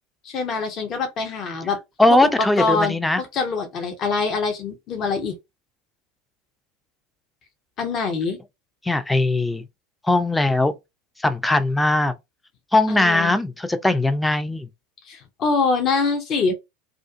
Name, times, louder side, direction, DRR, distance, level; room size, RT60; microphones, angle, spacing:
voice 1, 0.2-1.8 2.1-2.3 2.6-5.3 7.8-8.4 12.9-13.3 15.1-16.5, left 4 dB, 40° left, 0.7 m, -24 dB
voice 2, 2.0-3.2 8.8-9.6 10.0-10.8 11.2-12.1 12.7-14.7, left 2 dB, 10° left, 0.4 m, -19 dB
2.4 x 2.4 x 2.5 m
figure-of-eight pair, 80°, 0 cm